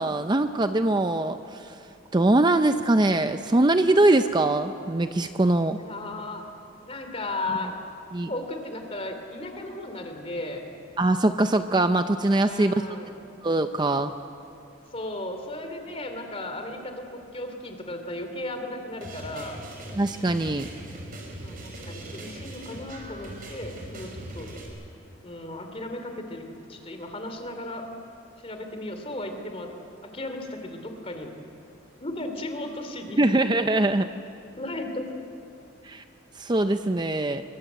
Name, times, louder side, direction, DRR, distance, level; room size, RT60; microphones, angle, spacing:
voice 1, 0.0-1.7 2.1-5.8 8.1-8.3 11.0-12.7 13.4-14.1 20.0-20.7 33.2-34.1 35.8-36.0 36.4-37.4, right 2 dB, 20° right, 8 dB, 0.5 m, -22 dB
voice 2, 5.8-6.5 6.9-7.8 8.3-10.6 12.4-13.1 14.9-19.6 21.3-24.6 25.2-27.9 28.4-29.7 30.0-31.3 32.0-33.2 34.6-35.1, left 2 dB, 30° left, 6 dB, 2.9 m, -35 dB
sound 1, 19.0-24.7, right 1 dB, 45° right, 4.8 m, -40 dB
25.5 x 23.0 x 8.1 m, 2.6 s
head